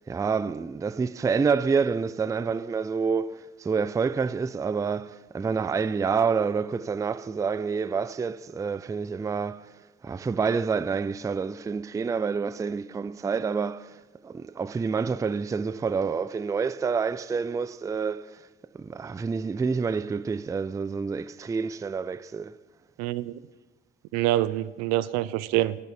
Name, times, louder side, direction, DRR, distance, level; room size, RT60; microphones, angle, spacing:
voice 1, 0.1-9.7 10.0-18.5 18.7-22.6, right 5 dB, 10° right, 0.4 m, -28 dB
voice 2, 23.0-23.3 24.1-25.8, right 15 dB, 65° right, 0.5 m, -25 dB
10.5 x 6.6 x 8.3 m
hypercardioid pair, 60°, 29 cm